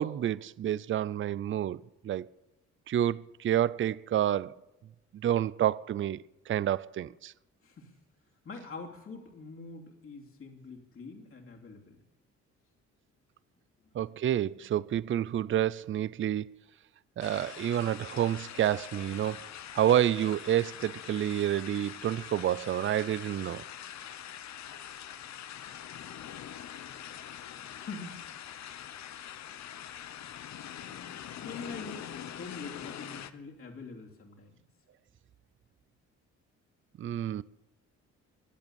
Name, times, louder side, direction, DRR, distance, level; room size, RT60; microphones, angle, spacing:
voice 1, 0.0-2.3 2.9-4.5 5.2-7.3 13.9-16.5 17.2-23.6 37.0-37.4, right 11 dB, 40° right, 0.5 m, -29 dB
voice 2, 7.6-7.9 8.4-12.0 27.7-28.3 30.8-34.6, left 4 dB, 45° left, 2.9 m, -45 dB
sound 1, 17.2-33.3, left 10 dB, 65° left, 1.0 m, -44 dB
22.5 x 8.1 x 7.1 m
cardioid pair, 90°, 30 cm